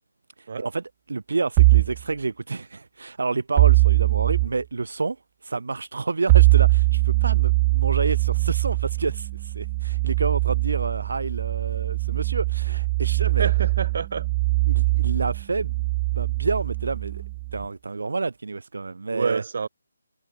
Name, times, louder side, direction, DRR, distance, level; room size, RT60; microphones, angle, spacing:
voice 1, 0.4-5.2 5.4-13.5 14.7-17.2 17.5-19.4, right 3 dB, 70° right, 1.4 m, -29 dB
sound 1, 1.6-2.0 3.6-4.5 6.3-17.6, right 23 dB, 15° right, 0.7 m, -21 dB
voice 2, 13.2-14.3 19.1-19.7, right 5 dB, 45° right, 5.3 m, -28 dB
hypercardioid pair, 170°, 0 cm